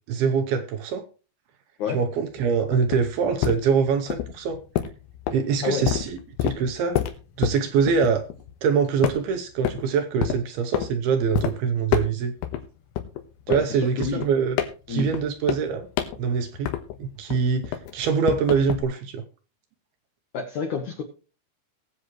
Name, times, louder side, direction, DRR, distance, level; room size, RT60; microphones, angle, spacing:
voice 1, 0.1-1.0 1.9-4.6 5.3-7.0 7.4-8.2 8.6-12.3 13.5-14.6 14.9-15.9 16.2-16.7 17.0-19.2, right 6 dB, 75° right, 7 dB, 2.5 m, -24 dB
sound 1, 2.3-8.7 9.0-9.9 10.2-10.9 11.3-11.5 11.9-12.6 13.0-17.0 17.3-18.8, left 11 dB, 90° left, 3.5 m, -28 dB
voice 2, 13.5-14.2 14.9-15.1 20.3-21.0, left 6 dB, 75° left, 4 dB, 1.8 m, -29 dB
20.5 x 7.8 x 3.1 m, 0.35 s
omnidirectional pair, 5.2 m